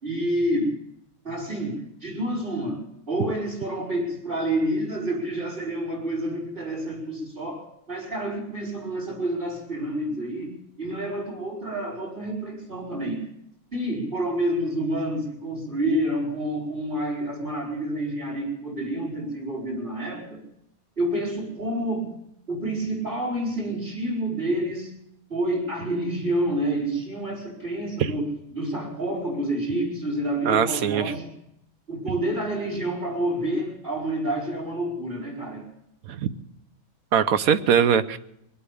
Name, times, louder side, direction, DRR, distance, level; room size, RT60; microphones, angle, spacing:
voice 1, 0.0-0.7 1.2-13.3 13.7-20.4 21.0-22.1 22.5-24.9 25.3-31.3 31.9-35.7, right 1 dB, 40° right, -9 dB, 4.7 m, -28 dB
voice 2, 30.5-31.0 36.1-36.3 37.1-38.2, right 8 dB, 75° right, 12 dB, 1.2 m, -21 dB
22.5 x 8.5 x 7.0 m, 0.78 s
omnidirectional pair, 1.5 m